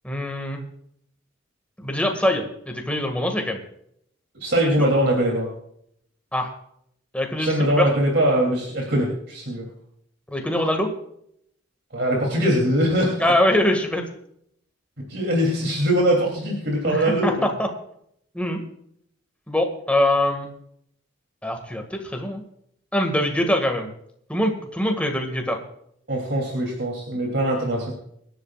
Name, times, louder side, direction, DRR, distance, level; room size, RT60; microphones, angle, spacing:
voice 1, 0.0-0.6 1.8-3.6 6.3-6.5 7.1-7.9 10.3-10.9 13.2-14.0 16.8-17.7 18.3-18.6 19.5-20.5 21.4-22.4 22.9-23.9 24.3-25.6, left 1 dB, 5° left, 3 dB, 1.9 m, -23 dB
voice 2, 4.4-5.5 7.4-9.7 11.9-13.3 15.1-17.4 26.1-27.9, right 1 dB, 60° right, -1 dB, 3.1 m, -22 dB
26.0 x 11.0 x 2.5 m, 0.71 s
head